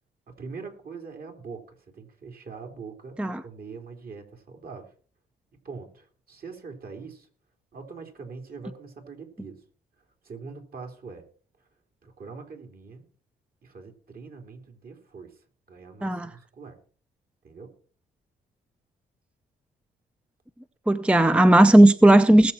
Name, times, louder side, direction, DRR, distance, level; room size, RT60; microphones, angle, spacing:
voice 1, 0.3-4.9 5.5-7.3 7.7-9.6 10.0-11.2 11.6-11.7 12.0-13.1 13.6-16.8 17.4-17.8, right 4 dB, 50° right, 3.6 m, -43 dB
voice 2, 20.9-22.5, right 1 dB, 5° right, 0.5 m, -15 dB
19.5 x 7.4 x 4.3 m
cardioid pair, 90°, 20 cm